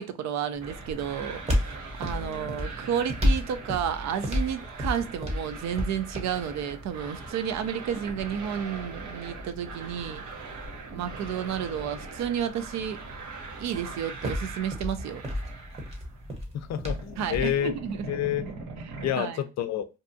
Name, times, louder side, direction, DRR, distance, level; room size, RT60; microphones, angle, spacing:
voice 1, 0.0-1.7 2.0-10.2 10.9-13.0 13.6-15.2 17.2-18.0 18.8-19.4, right 8 dB, 65° right, 0.4 m, -31 dB
sound 1, 0.5-17.6, left 1 dB, 20° right, 0.8 m, -34 dB
sound 2, 0.6-16.3 16.6-19.1, right 4 dB, 80° right, 0.9 m, -42 dB
voice 2, 2.1-2.6 16.5-17.7 18.1-18.4 19.0-19.9, left 11 dB, 60° left, 0.4 m, -29 dB
2.7 x 2.3 x 2.5 m
cardioid pair, 90°, 30 cm